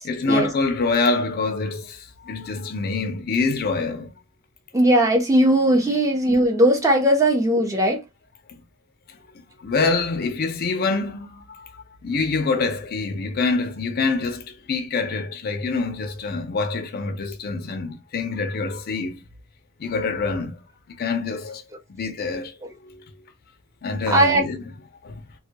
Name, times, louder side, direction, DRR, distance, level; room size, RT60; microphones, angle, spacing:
voice 1, 0.0-4.2 9.6-11.7 12.0-19.2 19.8-20.6 21.0-21.6 21.9-22.5 22.8-23.1 23.8-24.6 25.0-25.2, left 3 dB, 50° left, 0.4 m, -25 dB
voice 2, 4.7-8.0 24.1-24.4, right 1 dB, 15° right, 0.6 m, -18 dB
2.2 x 2.1 x 2.7 m
head